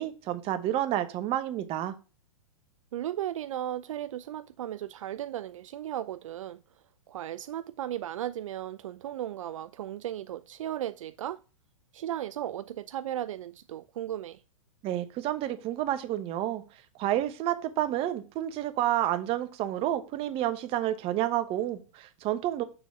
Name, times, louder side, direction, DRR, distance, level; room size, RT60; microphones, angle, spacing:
voice 1, 0.0-1.9 14.8-16.6 17.0-22.6, right 13 dB, 35° right, 1.0 m, -30 dB
voice 2, 2.9-6.6 7.1-11.4 11.9-14.4, right 12 dB, 75° right, 0.4 m, -36 dB
6.9 x 4.0 x 5.8 m
hypercardioid pair, 120°, 17 cm